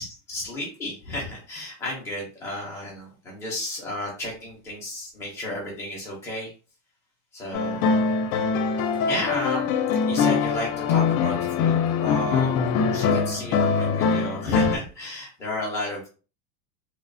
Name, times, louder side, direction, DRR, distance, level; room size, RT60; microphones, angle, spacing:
voice 1, 0.0-6.5 7.3-8.0 9.1-9.7 10.1-16.1, left 1 dB, 5° left, -5 dB, 0.4 m, -33 dB
sound 1, 7.5-14.8, left 5 dB, 75° left, 0.6 m, -23 dB
3.0 x 2.0 x 2.5 m, 0.36 s
supercardioid pair, 180°, 42 cm